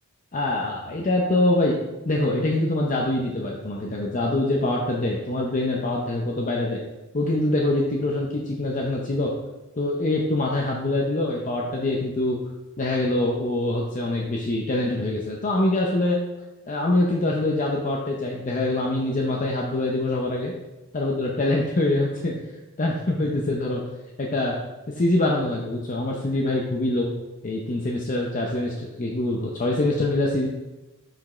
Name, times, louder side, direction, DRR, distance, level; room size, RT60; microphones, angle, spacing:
voice 1, 0.3-1.7 2.1-6.8 7.1-9.3 9.8-12.4 12.8-16.2 16.7-20.5 20.9-22.3 22.8-23.8 24.2-24.6 24.9-27.1 27.4-30.5, left 2 dB, 35° left, -1 dB, 0.6 m, -24 dB
6.1 x 5.1 x 4.3 m, 1.1 s
head